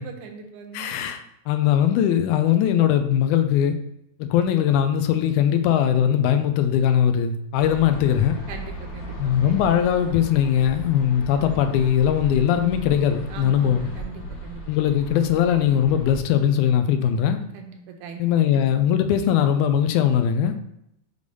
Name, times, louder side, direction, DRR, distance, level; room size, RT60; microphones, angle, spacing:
voice 1, 0.0-1.1 8.5-9.7 13.3-14.9 17.5-18.6, right 6 dB, 75° right, 4 dB, 2.0 m, -40 dB
voice 2, 0.7-3.8 4.2-8.4 9.2-13.9 14.7-17.4 18.2-20.6, left 9 dB, 85° left, 8 dB, 2.0 m, -20 dB
sound 1, 7.6-16.2, right 1 dB, 55° left, 2.0 m, -37 dB
6.8 x 3.3 x 5.3 m, 0.78 s
omnidirectional pair, 3.6 m